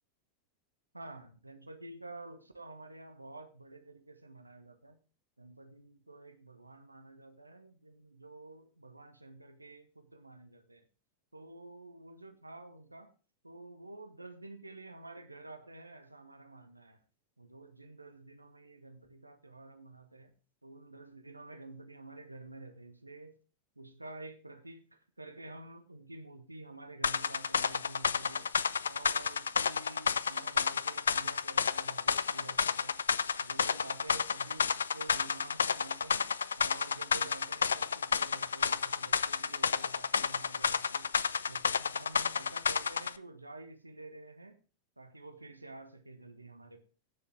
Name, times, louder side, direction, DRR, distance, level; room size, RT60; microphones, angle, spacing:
voice 1, 0.9-5.0 5.4-10.9 11.3-13.1 13.4-17.0 17.4-20.3 20.6-23.4 23.8-28.5 28.9-33.0 33.4-36.3 36.6-41.1 41.4-44.6 45.0-46.8, right 2 dB, 85° right, 1.1 m, -50 dB
sound 1, 27.0-43.2, left 6 dB, 70° left, 0.4 m, -31 dB
16.5 x 6.9 x 3.6 m
figure-of-eight pair, 90°, 0 cm